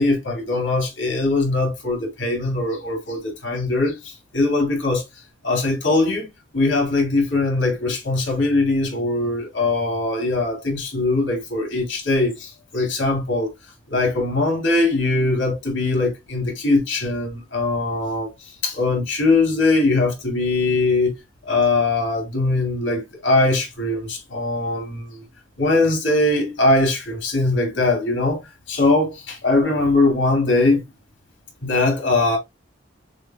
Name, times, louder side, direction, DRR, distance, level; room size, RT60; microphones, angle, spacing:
voice 1, 0.0-5.0 5.4-6.3 6.5-13.5 13.9-18.3 18.6-21.1 21.5-25.2 25.6-28.4 28.7-30.8 31.6-32.4, left 2 dB, 75° left, 2.2 m, -21 dB
6.9 x 2.3 x 2.3 m
head